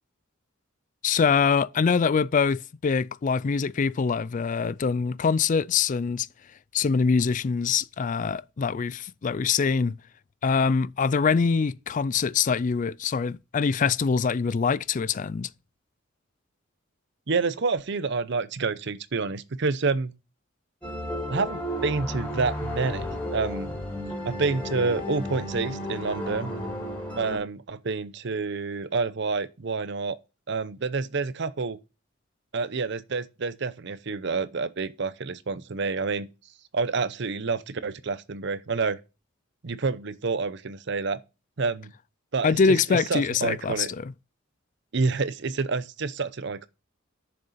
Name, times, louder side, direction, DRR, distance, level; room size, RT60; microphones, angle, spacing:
voice 1, 1.0-6.3 6.7-9.9 10.4-15.5 42.4-44.1, left 5 dB, 40° left, 0.4 m, -24 dB
voice 2, 17.3-20.1 21.3-23.7 24.2-26.5 27.1-30.2 30.5-31.8 32.5-36.3 36.7-39.0 39.6-41.2 41.6-41.9 42.3-43.9 44.9-46.7, right 4 dB, 60° right, 0.7 m, -28 dB
sound 1, 20.8-27.4, left 1 dB, 10° left, 4.5 m, -33 dB
10.5 x 6.8 x 4.2 m
head